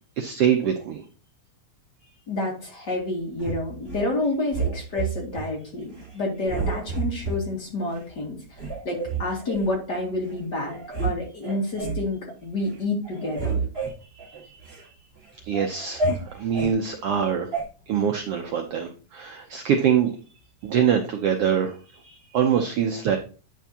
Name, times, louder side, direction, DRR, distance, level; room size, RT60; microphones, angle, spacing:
voice 1, 0.2-1.0 14.2-14.5 15.5-16.0 16.4-17.5 17.9-20.1 20.6-21.7 22.0-23.2, right 8 dB, 80° right, 4 dB, 1.3 m, -24 dB
voice 2, 2.3-8.6 8.8-13.6, left 2 dB, 40° left, -1 dB, 2.3 m, -29 dB
sound 1, 3.4-4.1 4.5-5.5 5.9-6.1 6.5-7.4 7.9-8.0 8.5-9.7 10.3-10.4 10.7-11.1 11.4-12.1 12.5-12.8 13.0-14.8 15.2-16.7 17.5-17.6, right 4 dB, 25° right, 1.9 m, -30 dB
9.3 x 5.9 x 2.8 m, 0.36 s
omnidirectional pair, 3.5 m